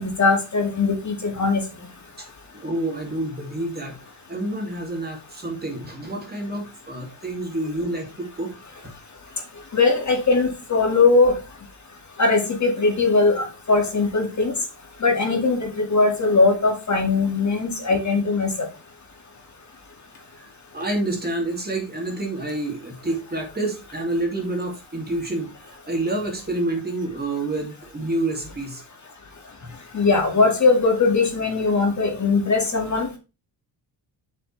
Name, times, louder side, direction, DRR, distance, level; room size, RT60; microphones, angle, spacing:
voice 1, 0.0-1.6 9.7-11.4 12.2-14.5 15.0-18.5 29.9-33.1, left 3 dB, 40° left, 3 dB, 2.2 m, -20 dB
voice 2, 2.5-4.0 4.3-8.5 17.9-18.0 20.4-20.5 20.7-28.8, right 2 dB, 20° right, 1 dB, 2.6 m, -28 dB
8.0 x 6.6 x 3.3 m, 0.30 s
cardioid pair, 115°, 45 cm